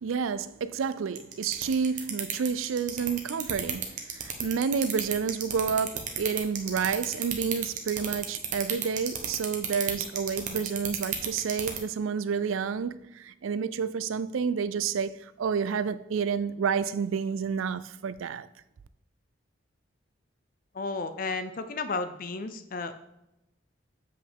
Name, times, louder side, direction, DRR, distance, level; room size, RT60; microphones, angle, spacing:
voice 1, 0.0-18.5, right 6 dB, 85° right, 0.4 m, -30 dB
Carpenters Brace Ratchet, 1.2-11.8, right 9 dB, 40° right, 0.9 m, -30 dB
voice 2, 20.7-22.9, left 3 dB, 45° left, 0.4 m, -33 dB
7.7 x 5.3 x 3.5 m
head